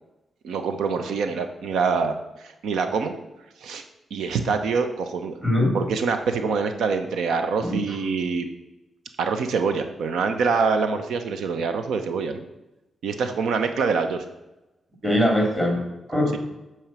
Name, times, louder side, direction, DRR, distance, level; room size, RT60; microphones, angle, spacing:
voice 1, 0.4-3.1 3.6-3.8 4.1-5.4 5.7-8.5 9.2-12.4 13.0-14.2, right 5 dB, 90° right, 8 dB, 0.8 m, -25 dB
voice 2, 5.4-5.8 7.6-8.0 15.0-15.8 16.1-16.4, left 1 dB, 10° right, 1 dB, 2.8 m, -22 dB
9.0 x 4.6 x 7.4 m, 0.98 s
wide cardioid pair, 140°, 0 cm